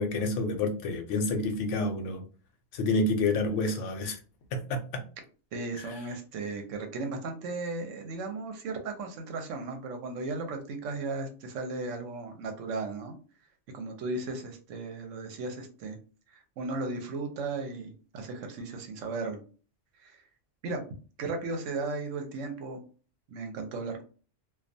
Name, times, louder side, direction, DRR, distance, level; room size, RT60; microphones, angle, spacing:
voice 1, 0.0-2.2 2.7-4.2 4.5-5.0 5.8-5.9, left 2 dB, 75° left, 5 dB, 0.9 m, -29 dB
voice 2, 5.5-13.1 13.7-16.0 16.3-19.4 20.0-20.2 20.6-20.8 21.2-22.8 23.3-24.0, right 3 dB, 80° right, 4 dB, 1.0 m, -36 dB
2.3 x 2.2 x 2.6 m, 0.38 s
omnidirectional pair, 1.3 m